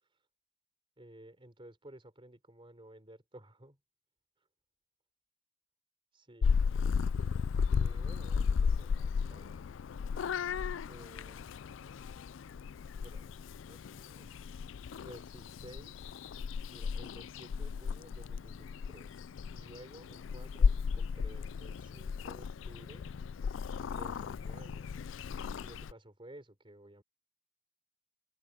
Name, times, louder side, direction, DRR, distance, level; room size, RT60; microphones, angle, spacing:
voice 1, 1.0-3.8 6.1-6.6 7.7-9.7 10.9-11.5 13.0-13.4 13.7-14.4 15.0-16.1 16.6-19.2 19.5-23.1 23.9-24.9 25.6-27.0, right 1 dB, 25° right, 4.3 m, -54 dB
Purr / Meow, 6.4-25.9, left 6 dB, 80° left, 0.4 m, -34 dB
head